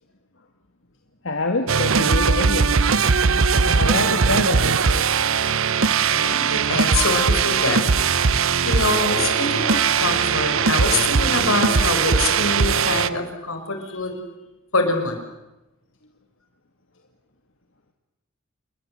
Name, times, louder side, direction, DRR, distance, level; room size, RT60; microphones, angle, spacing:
voice 1, 1.2-2.8 3.8-5.1 13.8-14.0, left 2 dB, 60° left, 4 dB, 2.2 m, -26 dB
sound 1, 1.7-13.1, right 5 dB, 70° right, 0.8 m, -20 dB
voice 2, 5.8-8.3 8.6-14.2 14.7-15.2, left 3 dB, 85° left, 5 dB, 5.6 m, -25 dB
sound 2, 8.9-13.1, left 4 dB, 45° left, 1.9 m, -36 dB
29.0 x 23.0 x 7.9 m, 0.99 s
head